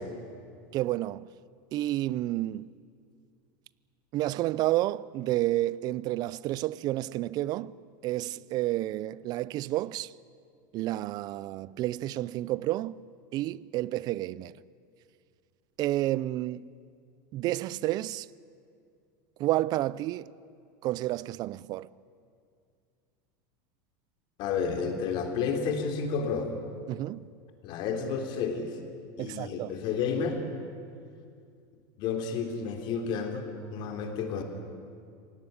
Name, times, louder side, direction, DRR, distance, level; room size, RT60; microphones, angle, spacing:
voice 1, 0.7-1.3 1.7-2.7 4.1-7.7 8.0-10.1 10.7-13.0 13.3-14.5 15.8-16.7 17.3-18.3 19.4-20.3 20.8-21.9 26.9-27.3 29.2-29.7, right 15 dB, 40° right, 0.6 m, -30 dB
voice 2, 24.4-26.5 27.6-28.7 29.2-30.4 32.0-34.4, left 6 dB, 50° left, 3.5 m, -31 dB
26.0 x 18.0 x 9.6 m
supercardioid pair, 140°, 10 cm